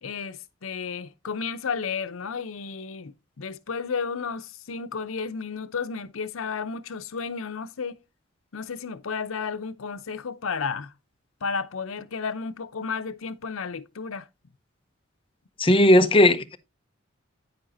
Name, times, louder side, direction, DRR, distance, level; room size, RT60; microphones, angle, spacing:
voice 1, 0.0-8.0 8.5-10.9 11.4-14.3, left 5 dB, 80° left, 0.7 m, -32 dB
voice 2, 15.6-16.6, left 1 dB, 25° left, 0.7 m, -17 dB
9.4 x 8.8 x 2.6 m
head